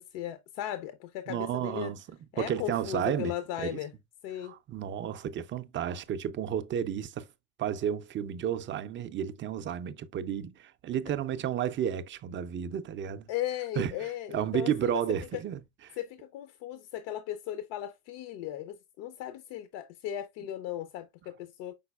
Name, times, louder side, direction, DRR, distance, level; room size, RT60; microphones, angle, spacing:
voice 1, 0.0-1.9 2.3-3.9 4.2-4.6 13.3-14.9 16.0-21.7, left 12 dB, 65° left, 0.6 m, -37 dB
voice 2, 1.3-2.0 2.4-3.3 3.6-3.8 4.4-7.3 7.6-13.3 13.8-14.1 14.3-15.6 15.9-16.0, right 9 dB, 30° right, 0.4 m, -32 dB
5.3 x 3.9 x 2.2 m
supercardioid pair, 95°, 43 cm